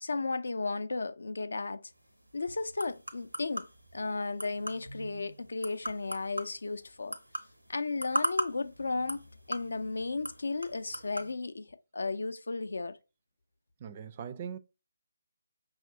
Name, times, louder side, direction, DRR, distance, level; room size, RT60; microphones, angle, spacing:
voice 1, 0.0-1.9 2.3-3.7 3.9-7.2 7.7-13.0, left 3 dB, 65° left, 0.5 m, -34 dB
sound 1, 1.9-11.3, right 1 dB, 85° right, 0.8 m, -40 dB
voice 2, 13.8-14.6, right 8 dB, 30° right, 0.4 m, -40 dB
5.8 x 2.4 x 2.7 m
figure-of-eight pair, 145°, 0 cm